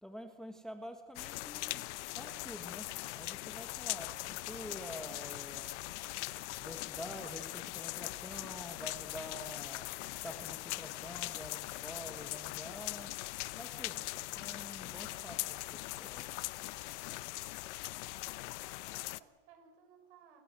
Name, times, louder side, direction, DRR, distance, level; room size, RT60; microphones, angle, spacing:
voice 1, 0.0-1.8 2.1-5.7 6.6-9.9 10.2-13.1 13.6-16.3, equal, ahead, 6 dB, 1.4 m, -48 dB
sound 1, 1.2-19.2, left 20 dB, 70° left, 0.9 m, -41 dB
voice 2, 18.1-20.4, right 7 dB, 65° right, 5 dB, 6.5 m, -62 dB
29.0 x 16.5 x 7.7 m, 1.5 s
supercardioid pair, 155°, 37 cm